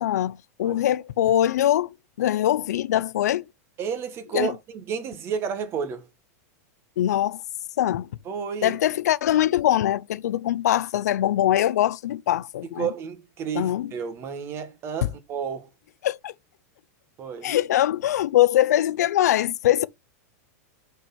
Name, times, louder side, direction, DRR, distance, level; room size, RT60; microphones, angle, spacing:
voice 1, 0.0-3.4 4.3-4.5 7.0-7.4 7.8-8.1 8.6-12.9 13.5-13.9 16.0-16.3 17.4-19.9, left 12 dB, 90° left, 0.5 m, -22 dB
voice 2, 3.8-6.0 8.2-8.8 12.8-15.7 17.2-17.5, right 6 dB, 30° right, 1.4 m, -31 dB
6.2 x 4.5 x 5.3 m
supercardioid pair, 155°, 9 cm